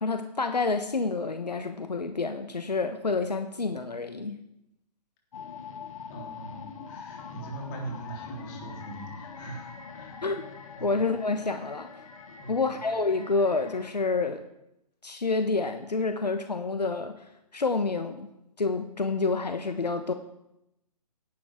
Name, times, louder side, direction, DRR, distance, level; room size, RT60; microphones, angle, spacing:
voice 1, 0.0-4.4 10.2-10.4 10.8-11.9 12.5-14.4 15.0-17.1 17.5-18.3 18.6-20.1, left 3 dB, 80° left, 8 dB, 1.1 m, -28 dB
sound 1, 5.3-13.9, left 5 dB, 55° left, 1.8 m, -44 dB
voice 2, 6.1-10.2 10.8-11.0 12.4-12.7, right 2 dB, 25° left, -1 dB, 3.6 m, -41 dB
17.0 x 11.5 x 3.6 m, 0.85 s
figure-of-eight pair, 135°, 21 cm